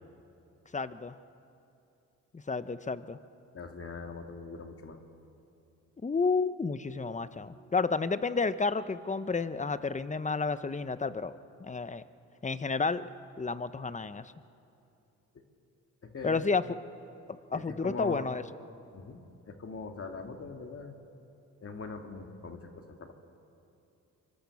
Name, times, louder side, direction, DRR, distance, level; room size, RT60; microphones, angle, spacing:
voice 1, 0.7-1.1 2.3-3.2 6.0-11.3 11.6-12.0 12.4-13.1 13.4-14.3 16.2-16.6 17.5-18.4, left 4 dB, 20° left, 13 dB, 1.0 m, -31 dB
voice 2, 3.5-5.0 16.0-16.5 17.5-18.3 18.9-19.2 19.4-21.0 21.6-23.1, left 4 dB, 45° left, 4 dB, 2.2 m, -42 dB
25.0 x 24.0 x 7.2 m, 2.7 s
supercardioid pair, 70°, 32 cm